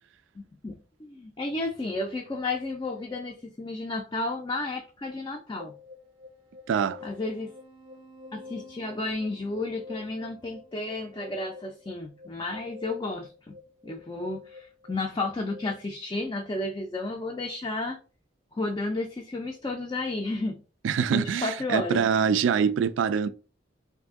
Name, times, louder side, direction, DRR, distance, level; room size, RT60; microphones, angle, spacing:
voice 1, 0.4-5.7 7.0-7.5 8.3-13.6 13.8-18.0 18.5-20.6 21.1-22.0, left 2 dB, 25° left, 0.3 m, -32 dB
sound 1, 5.6-15.7, left 4 dB, 25° right, 0.5 m, -47 dB
voice 2, 6.7-7.0 20.8-23.3, right 7 dB, 90° right, 0.3 m, -24 dB
2.6 x 2.5 x 3.5 m
head